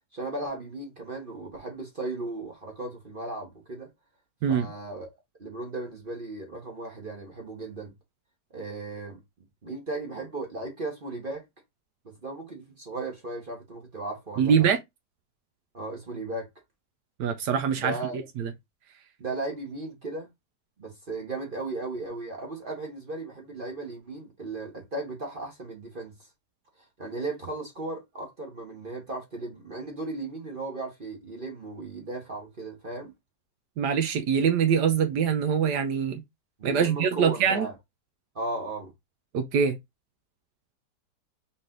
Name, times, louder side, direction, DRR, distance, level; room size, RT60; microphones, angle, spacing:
voice 1, 0.1-3.9 4.5-5.1 5.4-7.9 8.5-9.2 9.6-11.4 12.0-14.7 15.7-16.5 17.8-18.2 19.2-20.3 20.8-26.3 26.8-33.1 36.6-37.7 38.3-38.9, right 2 dB, 35° right, 1.1 m, -36 dB
voice 2, 14.4-14.8 17.2-18.0 18.4-18.5 33.8-36.2 36.6-37.7 39.3-39.8, right 7 dB, 75° right, 1.2 m, -24 dB
4.3 x 3.3 x 3.7 m
omnidirectional pair, 1.9 m